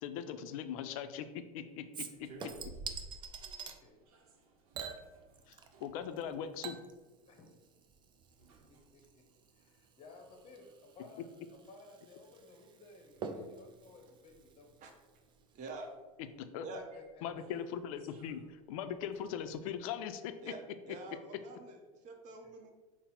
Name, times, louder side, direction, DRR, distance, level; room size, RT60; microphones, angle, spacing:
voice 1, 0.0-2.7 5.5-5.6 5.8-6.8 16.4-16.7 17.2-20.5 20.9-21.0, left 8 dB, 65° left, 10 dB, 0.4 m, -40 dB
Chink clink / Liquid, 1.9-3.8 4.7-5.9 6.2-15.2 15.5-15.6, right 5 dB, 25° right, 0.3 m, -48 dB
sound 1, 2.1-19.8, right 3 dB, 75° right, 0.7 m, -59 dB
voice 2, 3.0-3.4 3.6-4.0 7.3-7.6 8.5-14.7 16.7-17.2 20.8-21.4 22.4-22.5, left 3 dB, 30° left, 3 dB, 0.7 m, -57 dB
voice 3, 15.5-15.9 16.6-16.8 20.4-20.6 20.9-22.7, right 3 dB, 40° right, 3 dB, 0.8 m, -46 dB
3.9 x 2.0 x 4.2 m, 1.3 s
hypercardioid pair, 105°, 19 cm